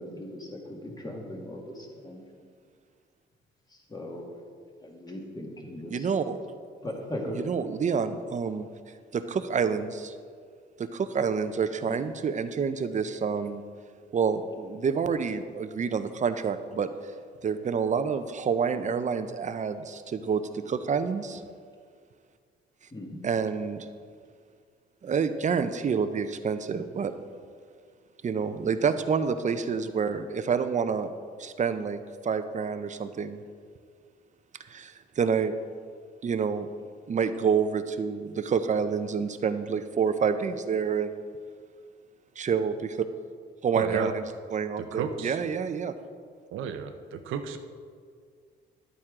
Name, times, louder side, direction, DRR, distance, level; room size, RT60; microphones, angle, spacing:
voice 1, 0.0-2.2 3.7-4.3 4.8-6.1 6.8-7.4 11.9-12.0 22.9-23.2, left 1 dB, 20° left, 0 dB, 2.0 m, -38 dB
voice 2, 5.9-6.4 7.3-8.7 9.1-10.1 10.8-13.6 14.1-16.9 17.4-21.4 23.2-23.9 25.0-27.1 28.2-31.1 31.4-33.4 34.7-35.5 36.2-36.7 37.1-41.2 42.4-43.1 43.6-44.2 44.5-45.9, right 6 dB, 35° right, 10 dB, 0.6 m, -28 dB
voice 3, 43.7-44.1 44.8-45.4 46.5-47.6, right 7 dB, 85° right, 8 dB, 0.8 m, -33 dB
11.5 x 9.0 x 3.7 m, 2.1 s
cardioid pair, 90°, 20 cm